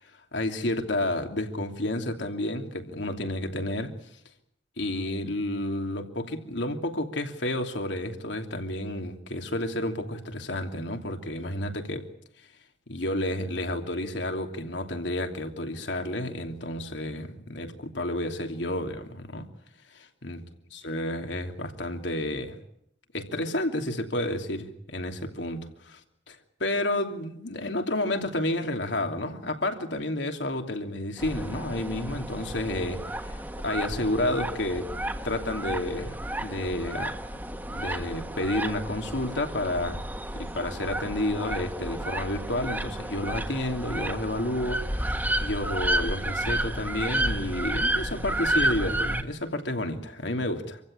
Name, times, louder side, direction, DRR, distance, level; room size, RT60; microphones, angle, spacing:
voice 1, 0.3-3.9 4.8-12.1 12.9-19.5 20.2-20.4 20.7-22.6 23.1-26.0 26.3-34.9 35.2-37.1 37.7-40.0 40.4-50.8, left 1 dB, 75° left, 3.0 m, -30 dB
sound 1, 31.2-49.2, right 1 dB, 10° right, 1.4 m, -31 dB
27.0 x 15.5 x 10.0 m
head